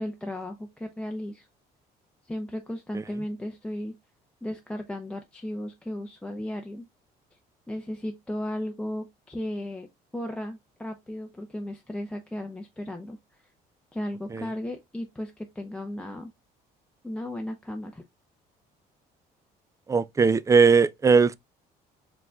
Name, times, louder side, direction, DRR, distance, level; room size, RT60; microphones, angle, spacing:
voice 1, 0.0-1.5 2.2-4.0 4.4-6.9 7.3-7.4 7.7-9.9 10.1-13.2 13.9-16.3 17.0-18.0, left 1 dB, 5° left, 0.7 m, -35 dB
voice 2, 19.9-21.3, right 5 dB, 20° right, 0.3 m, -19 dB
4.5 x 3.9 x 2.2 m
cardioid pair, 110°, 17 cm